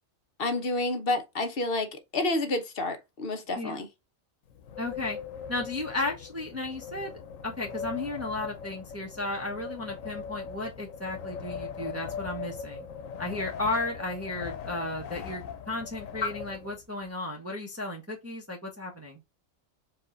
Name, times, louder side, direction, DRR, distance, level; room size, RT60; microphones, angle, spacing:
voice 1, 0.4-3.9, left 2 dB, 50° left, 1.0 m, -29 dB
voice 2, 3.6-3.9 4.8-5.2 5.5-12.9 13.2-19.2, left 2 dB, 15° right, 0.9 m, -34 dB
Wind, 4.5-17.1, left 6 dB, 90° left, 1.1 m, -40 dB
4.7 x 2.4 x 3.8 m
omnidirectional pair, 1.3 m